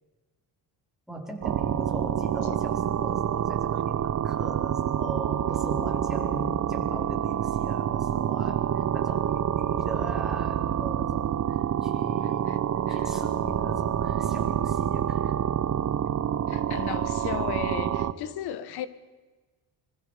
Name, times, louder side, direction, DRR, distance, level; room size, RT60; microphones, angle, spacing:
voice 1, 1.1-12.5 12.9-15.3, right 1 dB, ahead, 4.9 m, -40 dB
sound 1, 1.4-18.1, right 9 dB, 45° right, 1.0 m, -27 dB
voice 2, 16.5-18.9, left 10 dB, 75° left, 1.6 m, -35 dB
25.5 x 22.0 x 5.2 m
cardioid pair, 115°, 39 cm